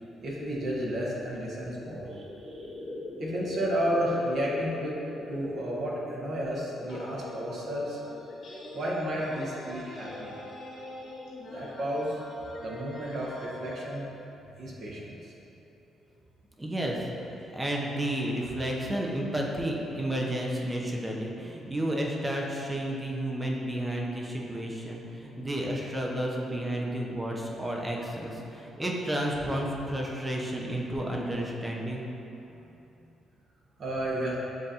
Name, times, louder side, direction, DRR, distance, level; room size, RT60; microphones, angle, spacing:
voice 1, 0.2-2.7 3.2-5.0 5.3-8.0 8.7-10.3 11.5-12.2 12.6-14.0 14.6-15.3 33.8-34.4, equal, 60° right, -4 dB, 1.0 m, -32 dB
sound 1, 0.8-12.3, left 1 dB, 15° left, 0.8 m, -44 dB
sound 2, 6.9-13.9, left 1 dB, 60° left, 1.2 m, -44 dB
voice 2, 16.6-17.1 17.5-32.0, right 1 dB, 15° right, -1 dB, 0.6 m, -31 dB
7.4 x 2.5 x 2.8 m, 3.0 s
cardioid pair, 90°, 0 cm